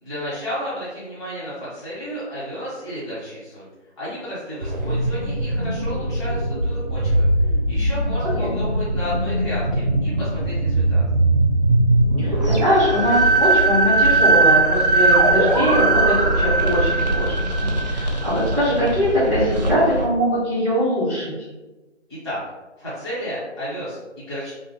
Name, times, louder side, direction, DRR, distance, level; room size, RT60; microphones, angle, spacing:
voice 1, 0.0-3.7 4.0-7.3 7.7-11.0 22.2-22.4 22.8-24.5, equal, 25° left, -11 dB, 1.3 m, -32 dB
sound 1, 4.6-20.0, right 2 dB, 40° right, 0.4 m, -20 dB
voice 2, 12.2-17.3 17.6-21.3, equal, 5° left, -15 dB, 0.6 m, -21 dB
2.6 x 2.6 x 2.8 m, 1.1 s
figure-of-eight pair, 150°, 36 cm